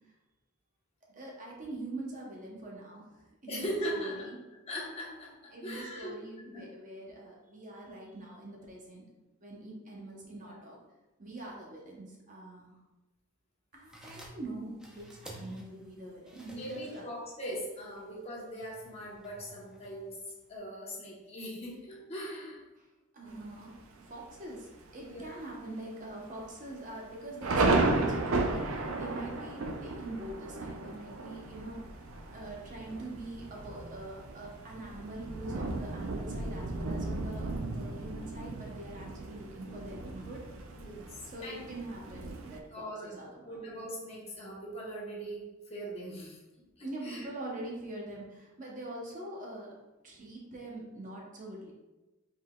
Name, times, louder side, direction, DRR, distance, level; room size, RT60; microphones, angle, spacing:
voice 1, 1.1-4.4 5.5-9.0 9.4-10.8 11.2-12.8 13.7-17.1 23.1-23.7 24.0-32.1 32.3-40.4 41.3-43.7 46.8-49.8 50.0-51.7, right 1 dB, 35° right, -2 dB, 0.8 m, -44 dB
voice 2, 3.5-4.3 4.7-6.2 6.5-6.6 10.4-10.6 16.4-20.2 20.5-22.6 23.2-23.4 25.0-25.3 40.8-41.6 42.7-46.4 46.8-47.3, equal, 30° left, -4 dB, 1.0 m, -40 dB
sound 1, 13.7-20.6, right 1 dB, 5° right, 0.5 m, -53 dB
Thunder, 23.3-23.8 24.4-24.5 24.8-25.2 25.5-25.6 26.3-42.6, right 2 dB, 70° right, 0.5 m, -34 dB
5.2 x 3.8 x 2.3 m, 1.1 s
head